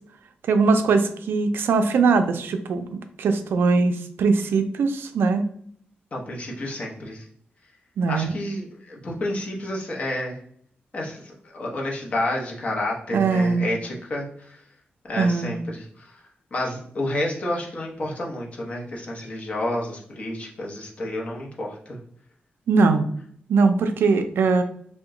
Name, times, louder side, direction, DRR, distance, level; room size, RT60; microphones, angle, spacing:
voice 1, 0.5-2.9 3.2-5.4 8.0-8.3 13.1-13.7 15.2-15.5 22.7-23.0 23.5-24.6, right 4 dB, 70° right, 8 dB, 0.4 m, -21 dB
voice 2, 6.1-7.3 8.1-10.4 10.9-14.6 15.0-22.0, left 1 dB, 35° left, -2 dB, 0.8 m, -30 dB
2.9 x 2.1 x 3.6 m, 0.63 s
wide cardioid pair, 150°, 4 cm